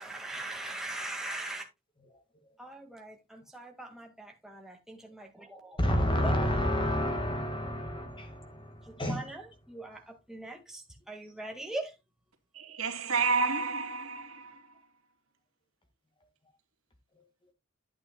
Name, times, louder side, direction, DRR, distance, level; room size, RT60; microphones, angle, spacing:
voice 1, 0.0-1.7 2.6-5.8 6.2-6.7 9.1-10.8 11.1-11.9, right 2 dB, ahead, 1.8 m, -41 dB
voice 2, 5.8-9.3, equal, 25° left, 1.8 m, -29 dB
voice 3, 12.5-14.6, right 4 dB, 85° right, 2.3 m, -30 dB
11.5 x 8.7 x 2.2 m
head